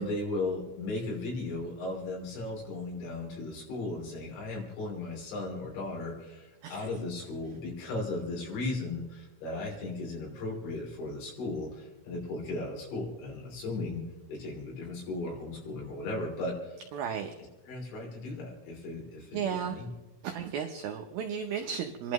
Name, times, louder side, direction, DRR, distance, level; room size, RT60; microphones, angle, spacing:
voice 1, 0.0-14.0 14.3-16.8 17.7-19.9, left 2 dB, 75° left, -1 dB, 5.6 m, -36 dB
voice 2, 16.9-17.3 19.3-19.8 20.2-22.1, right 8 dB, 85° right, 4 dB, 2.1 m, -34 dB
28.5 x 11.5 x 3.1 m, 1.2 s
omnidirectional pair, 5.4 m